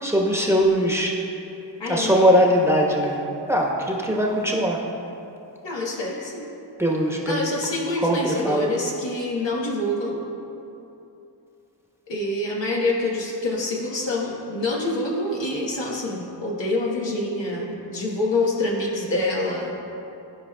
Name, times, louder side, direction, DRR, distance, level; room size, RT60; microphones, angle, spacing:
voice 1, 0.0-1.1 1.9-3.2 3.5-4.8 6.8-7.4 8.0-8.7, equal, 5° right, -2 dB, 1.1 m, -20 dB
voice 2, 1.8-2.3 5.6-6.5 7.3-10.2 12.1-19.7, left 2 dB, 75° left, -4 dB, 1.4 m, -26 dB
14.0 x 4.8 x 2.3 m, 2.8 s
cardioid pair, 40°, 45 cm